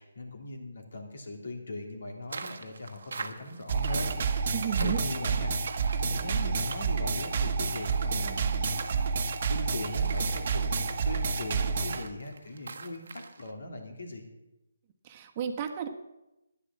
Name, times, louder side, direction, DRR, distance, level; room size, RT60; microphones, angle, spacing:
voice 1, 0.0-5.5 6.0-14.2, left 2 dB, 70° left, 3 dB, 3.1 m, -40 dB
sound 1, 2.3-13.5, right 4 dB, 65° right, 1.2 m, -45 dB
sound 2, 3.7-12.0, right 5 dB, 45° right, 1.3 m, -29 dB
voice 2, 4.5-5.0 15.0-15.9, right 8 dB, 30° right, 4 dB, 1.3 m, -32 dB
11.5 x 9.9 x 7.4 m, 0.94 s
figure-of-eight pair, 150°, 0 cm